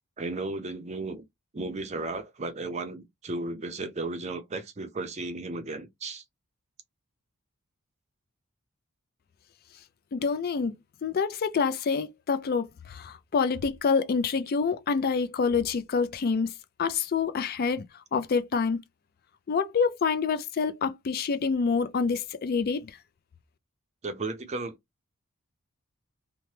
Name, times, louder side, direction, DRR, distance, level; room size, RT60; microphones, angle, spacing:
voice 1, 0.2-1.2 1.5-6.2 24.0-24.8, right 3 dB, 30° right, 0.5 m, -34 dB
voice 2, 10.1-10.7 11.0-16.5 16.8-17.8 18.1-18.8 19.5-23.0, left 5 dB, 45° left, 0.3 m, -27 dB
2.8 x 2.1 x 3.1 m
head